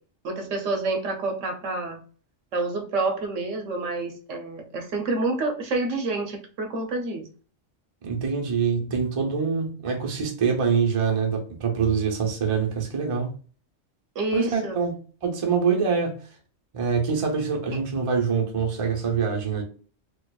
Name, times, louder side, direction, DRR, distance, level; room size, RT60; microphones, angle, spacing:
voice 1, 0.2-2.0 2.5-7.2 14.1-14.8, right 2 dB, 75° right, 1.2 m, -28 dB
voice 2, 8.0-13.3 14.3-16.2 16.7-19.6, right 5 dB, 30° right, 0.7 m, -25 dB
4.4 x 2.4 x 2.3 m
omnidirectional pair, 1.3 m